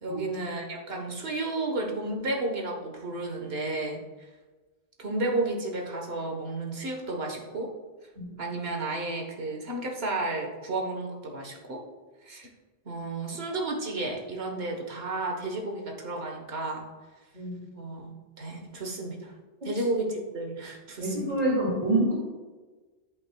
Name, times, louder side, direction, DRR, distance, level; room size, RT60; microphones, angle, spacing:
voice 1, 0.0-4.3 5.0-7.7 8.4-11.8 12.2-12.5 12.8-16.9 17.7-19.3 19.6-21.3, right 2 dB, 70° right, 2 dB, 1.5 m, -32 dB
voice 2, 21.0-22.1, right 1 dB, 50° right, -6 dB, 2.4 m, -26 dB
10.5 x 8.5 x 2.3 m, 1.3 s
omnidirectional pair, 1.1 m